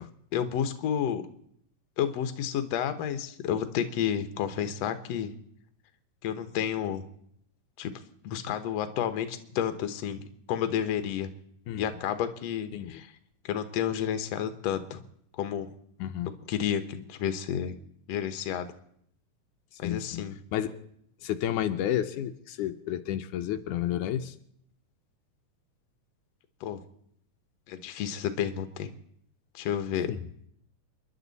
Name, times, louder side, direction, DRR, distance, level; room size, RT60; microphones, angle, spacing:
voice 1, 0.3-1.2 2.0-5.3 6.2-7.0 7.8-7.9 8.2-11.3 11.8-13.1 13.4-15.0 15.4-15.7 16.5-17.8 18.1-18.7 19.8-20.4 26.6-26.8 27.7-28.9 29.5-30.1, left 9 dB, 65° left, 9 dB, 2.1 m, -31 dB
voice 2, 19.8-20.2 20.5-20.8 21.2-24.3 30.1-30.2, left 11 dB, 85° left, 7 dB, 2.3 m, -31 dB
29.0 x 11.0 x 4.1 m, 0.70 s
omnidirectional pair, 3.5 m